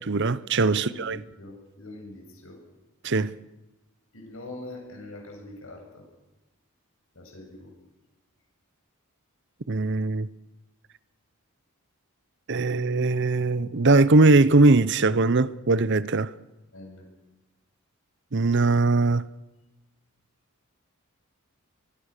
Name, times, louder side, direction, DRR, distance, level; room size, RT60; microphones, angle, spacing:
voice 1, 0.1-1.2 3.0-3.4 9.7-10.3 12.5-16.3 18.3-19.3, right 3 dB, 55° right, 0.8 m, -20 dB
voice 2, 0.7-2.6 4.1-6.0 7.1-7.7 16.7-17.0, left 1 dB, 65° left, 8.0 m, -43 dB
24.0 x 23.5 x 6.7 m
head